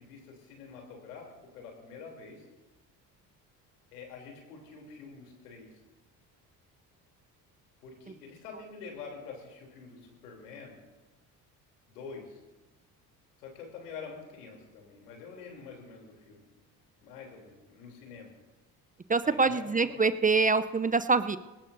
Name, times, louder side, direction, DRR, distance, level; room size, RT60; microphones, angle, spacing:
voice 1, 0.0-2.4 3.9-5.7 7.8-10.8 11.9-12.4 13.4-16.5 17.0-18.3 19.2-20.0, left 5 dB, 85° left, 1 dB, 3.3 m, -46 dB
voice 2, 19.1-21.4, right 4 dB, 20° right, 14 dB, 0.6 m, -25 dB
20.5 x 18.0 x 2.7 m, 1.2 s
hypercardioid pair, 55°, 46 cm